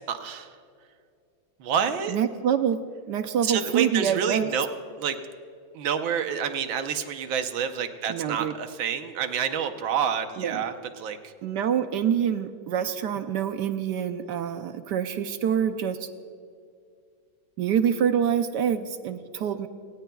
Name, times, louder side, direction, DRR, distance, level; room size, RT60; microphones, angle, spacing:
voice 1, 0.1-0.5 1.6-2.2 3.4-4.7 5.0-5.2 5.7-11.3, right 7 dB, 90° right, 8 dB, 1.7 m, -28 dB
voice 2, 2.1-2.8 3.1-4.5 8.1-8.5 10.4-10.6 11.4-16.1 17.6-19.7, right 8 dB, 70° right, 9 dB, 1.2 m, -26 dB
27.5 x 18.0 x 2.3 m, 2.4 s
omnidirectional pair, 2.1 m